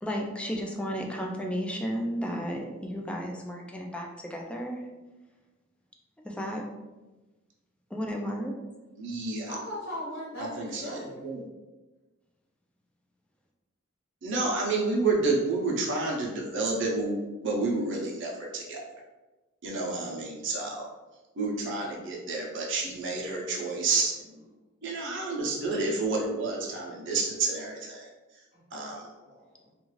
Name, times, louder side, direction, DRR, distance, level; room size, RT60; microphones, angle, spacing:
voice 1, 0.0-4.8 6.2-6.6 7.9-8.5, equal, 5° left, 0 dB, 0.3 m, -33 dB
voice 2, 9.0-9.5 10.4-11.4 14.2-18.8 19.6-20.9 21.4-24.4 24.8-28.1 28.7-29.1, right 3 dB, 65° right, -2 dB, 0.7 m, -30 dB
voice 3, 9.5-11.2 25.5-25.6 28.5-28.6 29.2-29.7, left 1 dB, 70° left, -8 dB, 1.1 m, -39 dB
2.5 x 2.3 x 3.0 m, 1.2 s
head